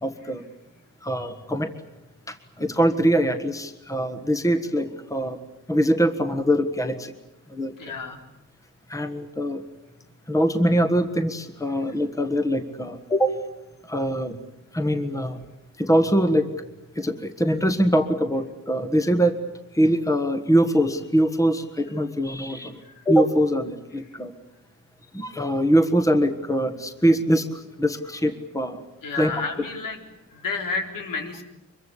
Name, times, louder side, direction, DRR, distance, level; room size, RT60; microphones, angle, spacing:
voice 1, 0.0-0.4 1.0-1.7 2.3-5.4 5.7-7.1 7.5-7.9 8.9-9.6 10.3-13.4 13.9-14.4 14.7-15.4 15.8-16.5 16.9-19.4 19.7-22.8 23.0-24.3 25.1-28.8 29.1-29.3, equal, 10° left, 8 dB, 1.5 m, -23 dB
voice 2, 7.8-8.2 22.8-23.0 29.0-30.0 30.3-31.4, left 4 dB, 80° left, 3 dB, 4.2 m, -31 dB
25.0 x 23.0 x 8.4 m, 0.93 s
wide cardioid pair, 135°, 32 cm